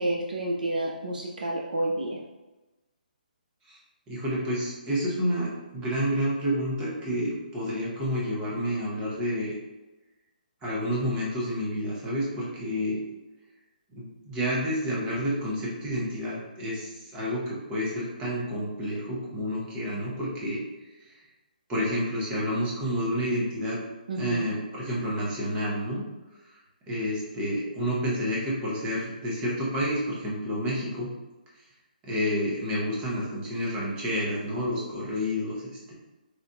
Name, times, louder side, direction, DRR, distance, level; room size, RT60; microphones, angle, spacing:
voice 1, 0.0-2.2 24.1-24.5, right 1 dB, 65° right, 1 dB, 0.4 m, -29 dB
voice 2, 4.1-9.5 10.6-13.0 13.9-20.6 21.7-23.8 24.2-26.1 26.9-31.1 32.0-35.9, equal, 15° right, -6 dB, 0.9 m, -29 dB
3.6 x 2.5 x 2.3 m, 1.1 s
figure-of-eight pair, 140°, 5 cm